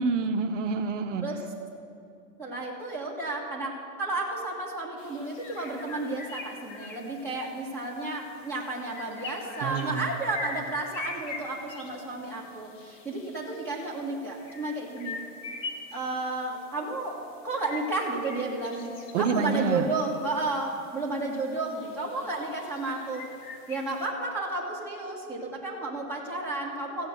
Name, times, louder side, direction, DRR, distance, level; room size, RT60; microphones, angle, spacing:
voice 1, 0.0-1.2 9.6-10.1 19.1-19.9, right 5 dB, 55° right, 5 dB, 0.7 m, -27 dB
voice 2, 2.4-15.2 15.9-17.2 17.4-23.3 23.7-27.1, right 2 dB, 5° left, -3 dB, 1.6 m, -32 dB
sound 1, 5.0-24.1, left 4 dB, 55° left, 1.6 m, -44 dB
15.0 x 8.7 x 6.7 m, 2.6 s
supercardioid pair, 165°, 45 cm